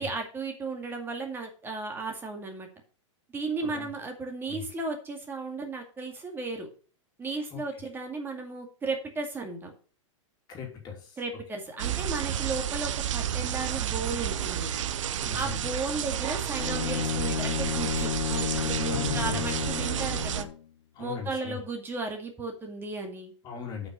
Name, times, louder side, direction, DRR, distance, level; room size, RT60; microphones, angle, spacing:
voice 1, 0.0-2.7 3.3-6.7 7.2-9.7 11.2-14.7 15.3-20.5 21.0-23.3, right 3 dB, 15° right, 3 dB, 2.1 m, -35 dB
voice 2, 7.3-7.8 10.5-11.2 15.2-15.6 18.8-19.5 20.9-21.6 23.4-23.9, left 8 dB, 25° left, 1 dB, 2.8 m, -39 dB
sound 1, 11.8-20.4, right 10 dB, 70° right, 0.9 m, -31 dB
Bowed string instrument, 16.6-20.6, left 9 dB, 90° left, 0.5 m, -32 dB
8.1 x 5.8 x 6.9 m, 0.39 s
hypercardioid pair, 150°, 16 cm